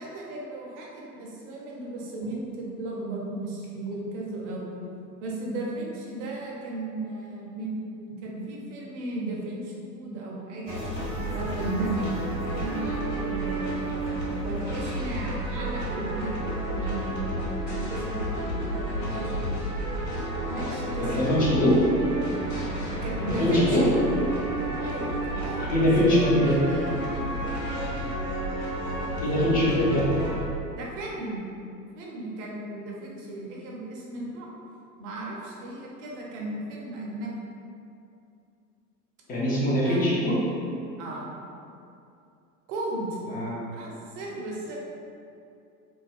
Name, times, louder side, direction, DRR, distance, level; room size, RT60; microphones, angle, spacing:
voice 1, 0.0-4.7 5.2-10.8 11.3-12.1 12.5-13.9 14.4-19.7 20.5-21.2 23.0-24.3 24.8-25.7 26.0-27.4 28.8-29.2 30.7-31.4 32.0-34.5 35.0-37.3 39.8-40.1 41.0-41.3 42.7-43.2 43.7-44.8, right 2 dB, 45° right, -3 dB, 0.7 m, -35 dB
sound 1, 10.7-30.4, right 1 dB, 80° left, 0.9 m, -31 dB
voice 2, 21.0-21.8 23.4-23.9 25.7-26.6 29.2-30.1 39.3-40.4 43.3-43.6, left 1 dB, 20° left, -7 dB, 0.6 m, -22 dB
2.5 x 2.1 x 3.3 m, 2.6 s
figure-of-eight pair, 90°, 49 cm